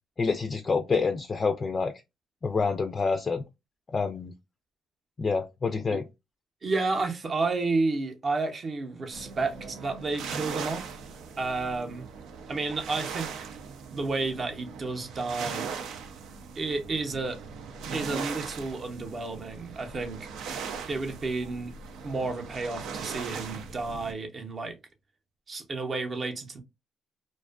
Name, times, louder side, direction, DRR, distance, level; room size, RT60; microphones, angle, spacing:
voice 1, 0.2-1.9 2.4-3.4 3.9-4.3 5.2-6.0, left 4 dB, 35° left, 0.3 m, -27 dB
voice 2, 6.6-11.0 11.4-12.1 12.5-13.5 13.9-15.7 16.6-17.4 17.9-20.3 20.9-21.7 22.0-24.8 25.5-26.6, right 3 dB, 40° right, 0.6 m, -31 dB
sound 1, 9.1-24.1, right 6 dB, 85° right, 0.4 m, -39 dB
2.5 x 2.3 x 2.3 m
cardioid pair, 90°, 0 cm